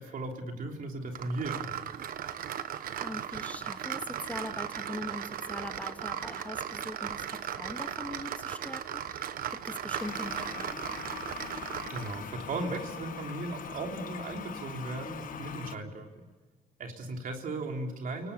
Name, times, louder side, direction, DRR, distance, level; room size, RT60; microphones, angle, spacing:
voice 1, 0.0-1.9 11.9-16.1 16.8-18.3, right 2 dB, 75° right, 3 dB, 3.4 m, -37 dB
sound 1, 1.1-12.3, right 9 dB, 90° right, 1.1 m, -37 dB
voice 2, 2.6-9.3 9.6-10.8, left 1 dB, 10° left, 6 dB, 1.9 m, -42 dB
Toilet flush, 10.0-15.8, left 8 dB, 70° left, 1.4 m, -42 dB
30.0 x 18.5 x 6.8 m, 1.3 s
cardioid pair, 90°, 14 cm